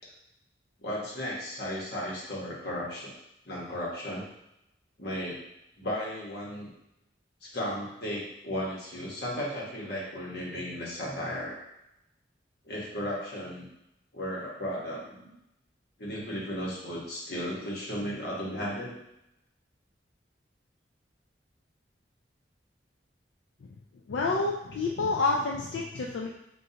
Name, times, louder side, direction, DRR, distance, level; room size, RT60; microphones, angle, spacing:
voice 1, 0.8-3.1 3.4-4.2 5.0-5.4 5.8-6.7 7.4-11.5 12.6-13.7 14.1-15.3 16.0-19.0, equal, 60° left, -5 dB, 1.3 m, -35 dB
voice 2, 24.1-26.3, left 3 dB, 90° left, -1 dB, 0.4 m, -28 dB
5.3 x 2.6 x 2.8 m, 0.84 s
head